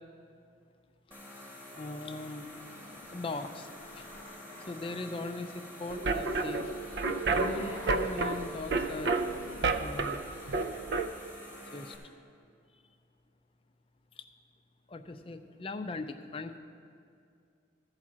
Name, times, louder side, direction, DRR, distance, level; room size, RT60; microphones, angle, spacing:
sound 1, 1.1-12.0, left 1 dB, 10° right, 1.4 m, -48 dB
sound 2, 1.2-1.3 2.0-5.4 7.0-10.1, equal, 80° right, 2.5 m, -51 dB
voice 1, 1.7-2.5 3.1-4.1 4.6-6.7 7.3-9.1 9.6-10.2 11.7-11.9 14.2-14.3 14.9-16.6, left 2 dB, 30° left, 7 dB, 0.5 m, -40 dB
sound 3, 5.9-11.1, right 3 dB, 60° right, 0.5 m, -31 dB
14.0 x 4.9 x 7.4 m, 2.4 s
head